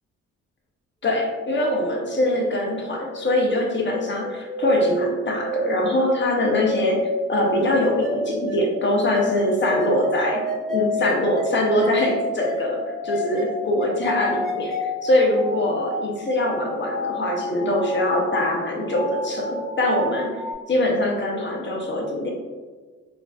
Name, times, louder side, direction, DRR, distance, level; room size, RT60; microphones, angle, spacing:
voice 1, 1.0-20.3 20.7-22.3, left 1 dB, 40° left, 0 dB, 0.8 m, -23 dB
sound 1, 2.7-20.5, left 1 dB, ahead, 1.3 m, -31 dB
4.5 x 2.6 x 2.4 m, 1.4 s
cardioid pair, 90°, 30 cm